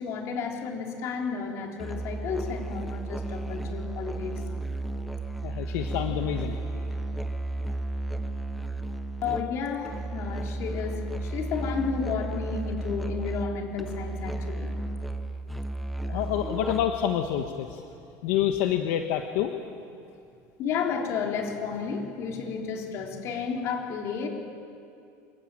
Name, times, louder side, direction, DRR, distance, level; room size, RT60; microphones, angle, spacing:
voice 1, 0.0-4.5 9.2-14.7 20.6-24.3, left 6 dB, 40° left, 1 dB, 4.0 m, -32 dB
Musical instrument, 1.8-17.1, right 2 dB, ahead, 0.9 m, -33 dB
voice 2, 5.4-6.6 16.0-17.8 18.2-19.5, left 10 dB, 70° left, 5 dB, 1.5 m, -27 dB
27.5 x 22.0 x 9.2 m, 2.5 s
cardioid pair, 175°, 7 cm